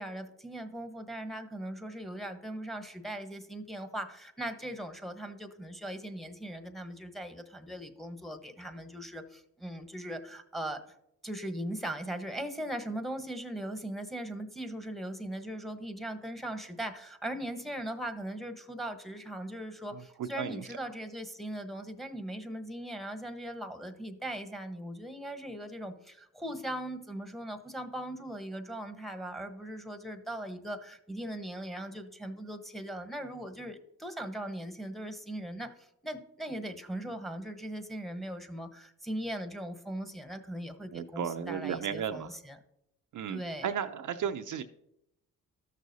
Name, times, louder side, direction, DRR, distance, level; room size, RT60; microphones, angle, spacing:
voice 1, 0.0-10.8 11.2-42.6 43.3-43.7, right 1 dB, ahead, 9 dB, 1.1 m, -39 dB
voice 2, 19.9-20.6 40.9-42.3 43.1-44.6, right 8 dB, 55° right, 8 dB, 0.6 m, -35 dB
13.0 x 6.2 x 2.7 m, 0.81 s
supercardioid pair, 55°, 37 cm